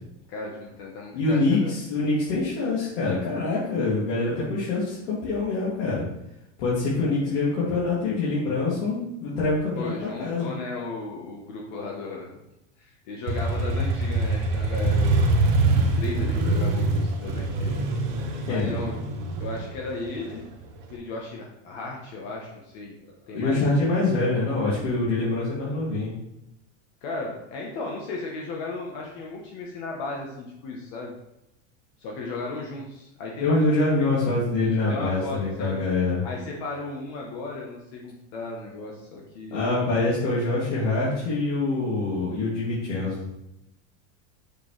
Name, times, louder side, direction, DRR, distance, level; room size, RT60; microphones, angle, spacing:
voice 1, 0.3-1.7 9.8-12.3 12.8-15.3 15.7-17.8 18.4-19.0 19.4-20.4 20.9-22.9 23.3-23.6 27.0-31.1 32.0-33.7 34.0-34.1 34.9-35.8 36.2-39.7, left 3 dB, 40° left, -1 dB, 1.0 m, -35 dB
voice 2, 1.1-6.0 6.6-9.9 10.2-10.5 18.5-18.7 23.3-26.1 33.4-36.2 39.5-43.3, left 3 dB, 70° left, -9 dB, 2.5 m, -25 dB
Motorcycle, 13.3-20.9, right 2 dB, 40° right, 1.1 m, -24 dB
6.7 x 5.9 x 3.2 m, 0.88 s
supercardioid pair, 180°, 37 cm